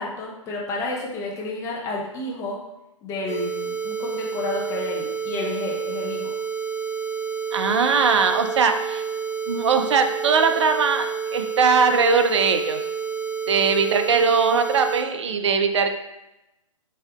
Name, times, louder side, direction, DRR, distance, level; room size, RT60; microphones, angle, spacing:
voice 1, 0.0-2.6 3.0-6.3, left 2 dB, 15° left, -3 dB, 0.8 m, -30 dB
sound 1, 3.3-15.0, right 6 dB, 15° right, 0.8 m, -29 dB
voice 2, 7.5-9.0 9.5-12.8 13.5-15.9, right 5 dB, 55° right, 7 dB, 0.5 m, -20 dB
7.4 x 2.8 x 2.3 m, 0.94 s
figure-of-eight pair, 125°, 18 cm